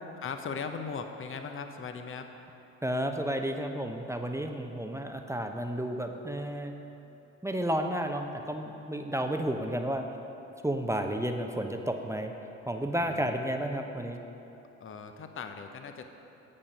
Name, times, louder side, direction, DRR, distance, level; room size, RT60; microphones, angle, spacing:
voice 1, 0.1-2.3 13.1-13.5 14.8-16.1, left 5 dB, 35° left, 6 dB, 0.9 m, -39 dB
voice 2, 2.8-6.7 7.4-10.1 10.6-12.3 12.7-14.2, right 1 dB, 10° right, 4 dB, 0.8 m, -32 dB
8.7 x 8.5 x 5.4 m, 2.9 s
hypercardioid pair, 55°, 38 cm